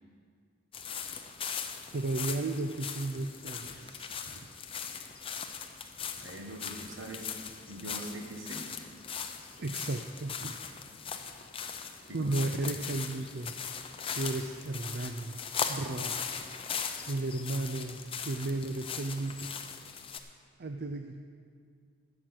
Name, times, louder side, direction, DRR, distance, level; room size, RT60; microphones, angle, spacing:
sound 1, 0.7-20.2, left 7 dB, 25° left, 0.6 m, -39 dB
voice 1, 1.9-4.5 9.6-10.6 12.1-13.5 14.1-15.4 15.7-16.3 17.1-19.5 20.6-21.2, right 2 dB, 50° right, 6 dB, 0.5 m, -34 dB
voice 2, 6.2-7.4 7.7-8.7 12.1-12.4, right 1 dB, 65° right, 2 dB, 1.6 m, -42 dB
11.0 x 7.8 x 7.6 m, 2.1 s
head